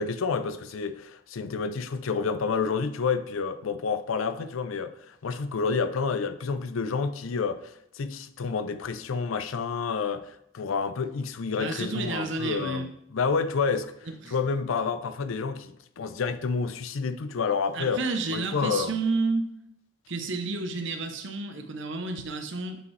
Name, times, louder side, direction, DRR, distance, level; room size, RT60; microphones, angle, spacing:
voice 1, 0.0-13.9 14.3-18.0 18.3-19.0, left 5 dB, 85° left, 0.5 m, -29 dB
voice 2, 11.6-12.9 14.2-14.3 17.7-19.5 20.1-22.8, right 3 dB, 65° right, 0.8 m, -30 dB
7.6 x 5.2 x 3.2 m
head